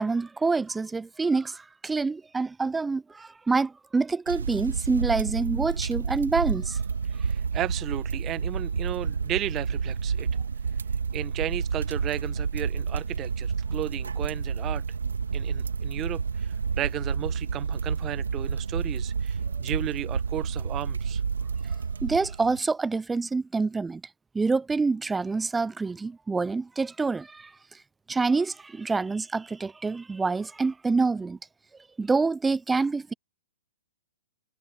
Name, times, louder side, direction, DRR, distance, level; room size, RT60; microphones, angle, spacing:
voice 1, 0.0-6.8 22.0-24.0 24.3-27.5 28.1-31.4 32.0-33.1, right 4 dB, 10° right, 0.6 m, -26 dB
sound 1, 4.3-22.6, right 5 dB, 80° right, 2.1 m, -30 dB
voice 2, 7.1-10.3 11.1-14.8 15.3-21.2, right 13 dB, 25° right, 1.2 m, -34 dB
hypercardioid pair, 120°, 0 cm